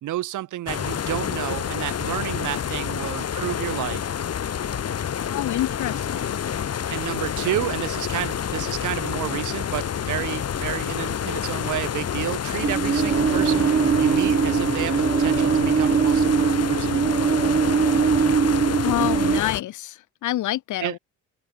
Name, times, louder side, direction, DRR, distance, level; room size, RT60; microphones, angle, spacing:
voice 1, 0.0-4.1 6.9-17.4 20.8-21.0, right 14 dB, 80° right, 2.8 m, -31 dB
sound 1, 0.7-19.6, left 8 dB, 55° left, 4.3 m, -28 dB
voice 2, 5.3-6.4 18.8-21.0, left 14 dB, 80° left, 1.4 m, -27 dB
sound 2, 12.6-19.4, right 6 dB, 30° right, 0.8 m, -21 dB
Wind instrument woodwind instrument, 13.1-16.2, right 11 dB, 65° right, 2.2 m, -34 dB
cardioid pair, 90°, 30 cm